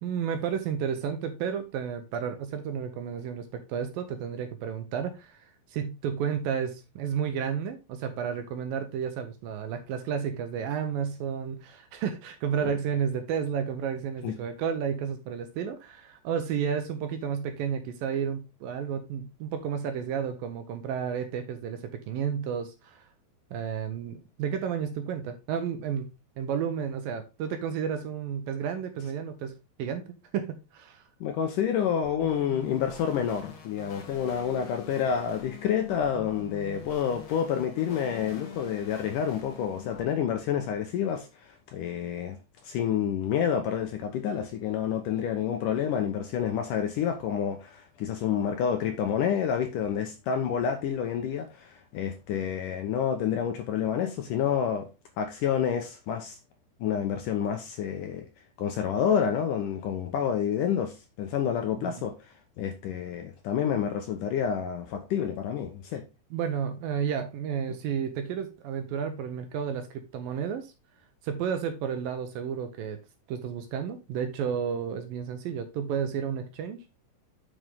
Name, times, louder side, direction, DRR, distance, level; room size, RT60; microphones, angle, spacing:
voice 1, 0.0-23.0 23.5-30.0 30.3-31.0 61.7-62.0 66.3-70.7 71.2-73.0 73.3-76.9, right 7 dB, 75° right, 2.4 m, -32 dB
voice 2, 31.2-42.4 42.6-54.9 55.2-56.4 56.8-58.3 58.6-62.1 62.6-66.0, left 8 dB, 70° left, 2.1 m, -29 dB
sound 1, 32.0-40.0, left 6 dB, 55° left, 1.5 m, -44 dB
7.7 x 6.4 x 3.6 m
omnidirectional pair, 4.6 m